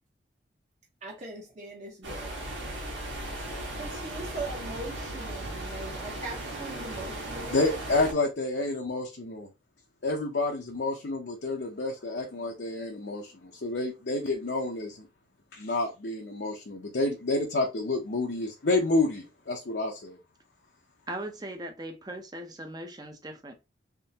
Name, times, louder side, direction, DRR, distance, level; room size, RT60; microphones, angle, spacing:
voice 1, 1.0-2.4 3.7-7.6, right 2 dB, 40° right, 1.0 m, -40 dB
sound 1, 2.0-8.1, right 1 dB, 80° right, 1.4 m, -37 dB
voice 2, 7.5-9.5 10.0-15.1 15.5-20.2, left 2 dB, 60° left, 0.6 m, -29 dB
voice 3, 21.1-23.5, right 1 dB, 20° right, 0.6 m, -39 dB
3.6 x 3.2 x 2.8 m
head